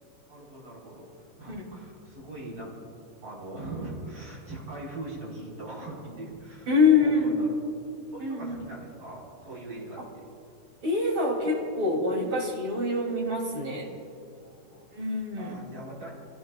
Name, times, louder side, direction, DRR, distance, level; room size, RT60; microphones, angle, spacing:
voice 1, 0.3-1.1 1.4-2.7 3.2-7.5 8.1-10.3 14.3-14.9 15.3-16.1, right 2 dB, 85° right, -5 dB, 6.1 m, -41 dB
voice 2, 6.7-7.4 8.2-8.6 10.8-13.9 14.9-15.6, left 3 dB, 65° right, -1 dB, 4.1 m, -25 dB
29.5 x 17.0 x 2.5 m, 2.4 s
omnidirectional pair, 2.4 m